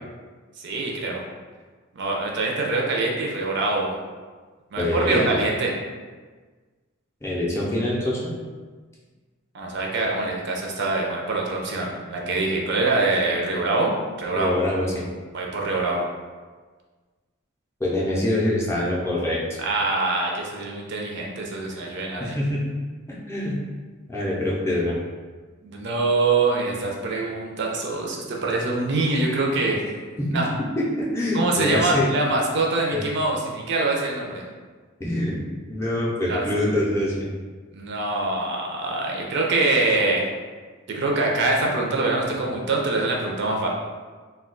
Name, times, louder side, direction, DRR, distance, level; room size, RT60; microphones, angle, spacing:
voice 1, 0.6-1.2 1.9-4.0 4.7-5.7 9.5-13.9 14.2-14.5 15.3-16.0 19.6-22.4 25.6-29.8 30.3-30.5 31.3-34.4 36.3-36.4 37.7-40.2 40.9-43.7, right 2 dB, 55° right, -1 dB, 0.5 m, -24 dB
voice 2, 4.8-5.4 7.2-8.3 14.3-15.0 17.8-19.4 22.2-22.7 23.3-23.6 24.1-24.9 30.2-30.4 30.8-32.1 32.9-33.0 35.0-35.4 35.7-37.3, left 1 dB, 15° left, -6 dB, 0.5 m, -24 dB
2.3 x 2.2 x 3.7 m, 1.4 s
head